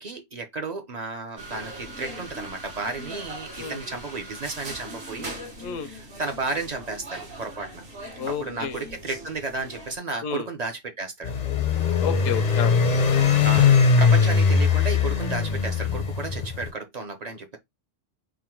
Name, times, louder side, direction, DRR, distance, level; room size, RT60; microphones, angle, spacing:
voice 1, 0.0-5.3 5.8-7.8 8.3-11.3 13.4-13.7 14.0-17.6, right 3 dB, 40° right, 0.7 m, -33 dB
sound 1, 1.4-10.0, right 1 dB, 55° right, 1.4 m, -40 dB
voice 2, 8.2-8.9 10.2-10.5 12.0-12.8, left 8 dB, 85° left, 1.1 m, -31 dB
sound 2, 11.2-16.7, left 5 dB, 45° left, 0.5 m, -20 dB
3.6 x 2.3 x 4.4 m
omnidirectional pair, 1.3 m